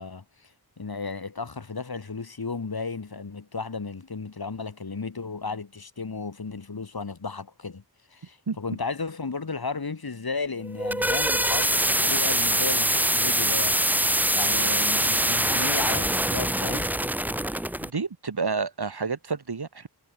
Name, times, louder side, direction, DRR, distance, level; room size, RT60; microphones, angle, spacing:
voice 1, 0.0-7.8 8.1-16.9, left 4 dB, 65° left, 2.7 m, -34 dB
sound 1, 10.6-17.9, right 1 dB, 5° right, 0.6 m, -24 dB
voice 2, 17.4-19.9, right 4 dB, 75° right, 2.7 m, -30 dB
wide cardioid pair, 55°, 40 cm